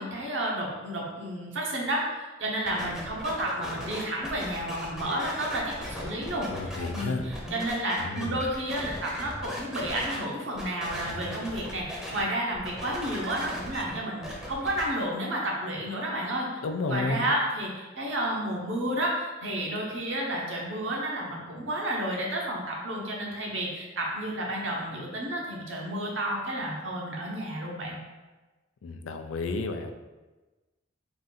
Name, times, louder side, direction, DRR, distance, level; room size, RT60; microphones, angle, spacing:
voice 1, 0.0-6.5 6.9-16.6 16.9-28.0, right 1 dB, 70° right, -3 dB, 1.0 m, -31 dB
sound 1, 2.6-10.2 10.5-12.2 12.5-14.8, equal, 5° right, 0.7 m, -38 dB
voice 2, 6.5-7.3 8.0-8.4 16.6-17.3 28.8-29.9, left 3 dB, 85° left, 7 dB, 0.4 m, -31 dB
3.9 x 2.5 x 4.0 m, 1.2 s
head